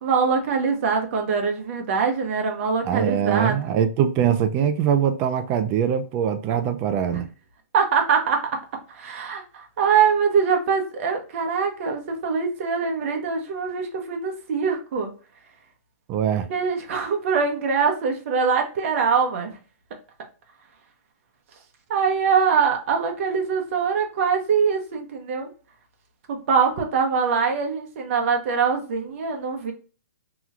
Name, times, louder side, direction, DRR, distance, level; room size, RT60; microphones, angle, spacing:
voice 1, 0.0-3.6 7.1-7.2 7.7-8.6 8.9-15.1 16.5-19.6 21.9-25.5 26.3-29.7, right 6 dB, 50° right, 0.9 m, -23 dB
voice 2, 2.8-7.3 16.1-16.5, right 9 dB, 25° right, 0.4 m, -22 dB
3.0 x 3.0 x 2.4 m
hypercardioid pair, 150°, 9 cm